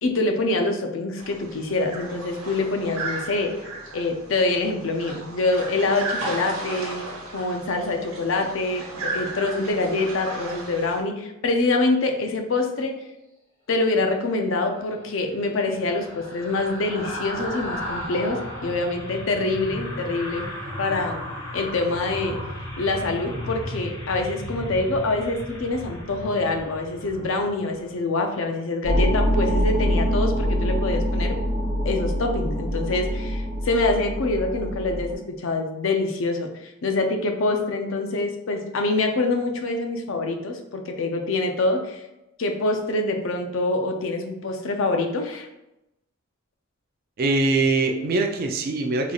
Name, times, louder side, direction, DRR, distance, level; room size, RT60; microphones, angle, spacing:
voice 1, 0.0-3.5 3.9-7.0 7.3-12.9 13.7-20.5 20.8-21.2 21.5-22.4 22.8-31.4 31.8-42.0 42.4-45.5, left 2 dB, 70° left, 4 dB, 0.5 m, -25 dB
sound 1, 1.2-11.0, right 2 dB, 90° right, 1.2 m, -35 dB
sound 2, 14.6-28.0 28.3-28.5, equal, 85° left, 1.4 m, -35 dB
sound 3, 28.8-35.1, equal, 15° left, 1.2 m, -24 dB
voice 2, 47.2-49.1, right 3 dB, 45° right, 3 dB, 0.3 m, -22 dB
3.9 x 3.1 x 2.3 m, 0.92 s
head